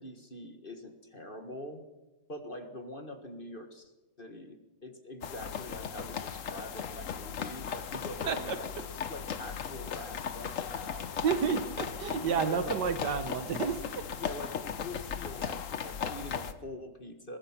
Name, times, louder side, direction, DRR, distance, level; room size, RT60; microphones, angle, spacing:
voice 1, 0.0-1.8 2.3-3.9 4.2-8.7 9.1-11.4 12.2-12.8 14.2-17.4, left 1 dB, 30° left, 6 dB, 1.7 m, -44 dB
sound 1, 5.2-16.5, left 7 dB, 50° left, 1.1 m, -37 dB
voice 2, 8.3-8.6 11.2-13.8, right 6 dB, 65° right, 9 dB, 1.7 m, -30 dB
23.0 x 20.0 x 6.0 m, 1.1 s
omnidirectional pair, 2.0 m